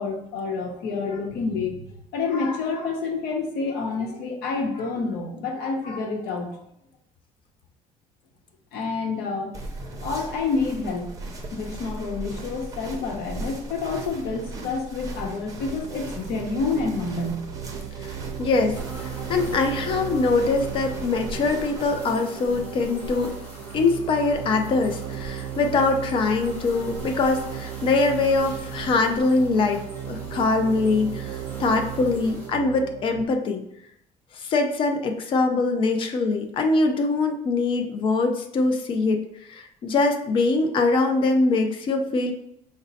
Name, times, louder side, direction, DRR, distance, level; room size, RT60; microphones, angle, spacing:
voice 1, 0.0-1.7 2.1-6.5 8.7-9.5 10.0-11.1 11.5-17.4, left 4 dB, 90° left, 1 dB, 0.8 m, -28 dB
sound 1, 9.5-21.9, right 2 dB, 20° right, 0.6 m, -38 dB
sound 2, 15.6-33.2, right 10 dB, 85° right, 0.5 m, -36 dB
voice 2, 18.4-23.3 23.7-33.6 34.3-39.2 39.5-42.3, left 3 dB, 35° left, 5 dB, 0.4 m, -23 dB
sound 3, 18.7-32.5, equal, 10° left, 1.1 m, -42 dB
5.0 x 2.1 x 4.0 m, 0.75 s
cardioid pair, 175°, 15 cm